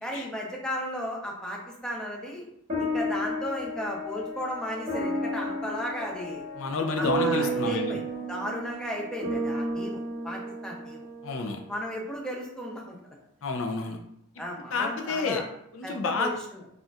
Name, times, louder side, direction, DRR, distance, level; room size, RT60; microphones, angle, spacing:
voice 1, 0.0-2.5 2.8-6.4 7.0-8.0 8.3-11.1 11.7-13.0 13.8-13.9 14.4-15.4 15.8-16.6, equal, 5° left, -2 dB, 0.6 m, -35 dB
sound 1, 2.7-11.4, right 1 dB, 30° right, 1.1 m, -32 dB
voice 2, 6.6-8.0 11.2-11.6 13.4-14.0 14.7-15.4 15.7-16.3, left 4 dB, 65° left, 3 dB, 0.5 m, -29 dB
4.1 x 2.5 x 2.4 m, 0.73 s
head